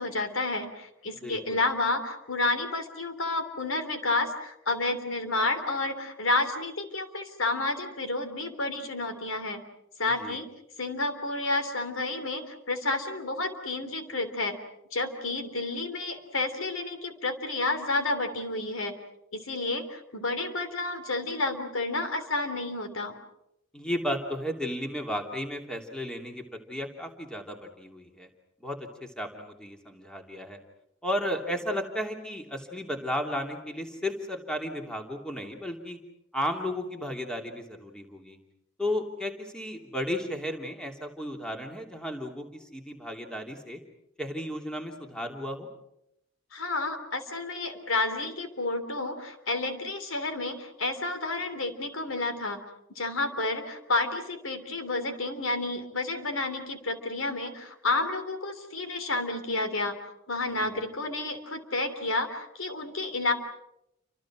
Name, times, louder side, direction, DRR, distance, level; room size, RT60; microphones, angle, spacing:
voice 1, 0.0-9.6 10.0-10.5 10.8-14.6 14.9-18.9 19.3-23.1 46.5-52.6 53.0-60.0 60.3-63.3, left 2 dB, 80° left, 8 dB, 3.4 m, -30 dB
voice 2, 1.2-1.6 10.0-10.4 23.7-28.3 28.6-30.6 31.0-36.0 36.3-38.4 38.8-43.8 44.2-45.7 60.6-60.8, left 1 dB, 5° left, 3 dB, 3.0 m, -34 dB
29.5 x 26.0 x 6.2 m, 0.82 s
head